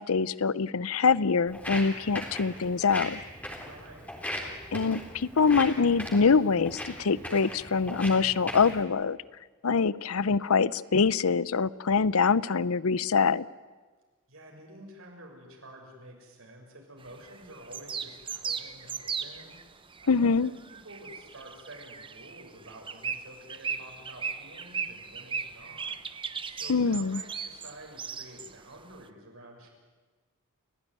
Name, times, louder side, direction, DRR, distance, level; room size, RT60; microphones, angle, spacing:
voice 1, 0.0-3.2 4.7-9.2 9.6-13.4 20.1-20.5 26.7-27.2, left 5 dB, 75° left, 19 dB, 0.7 m, -24 dB
Walk footsteps, 1.5-8.8, left 1 dB, 5° left, 3.9 m, -39 dB
voice 2, 3.4-4.2 14.3-19.6 20.0-25.9 26.4-29.7, right 1 dB, 70° right, 1 dB, 6.8 m, -49 dB
sound 1, 17.1-19.6 19.9-20.1 20.5-28.5, right 6 dB, 25° right, 1.0 m, -37 dB
30.0 x 15.5 x 9.6 m, 1.4 s
head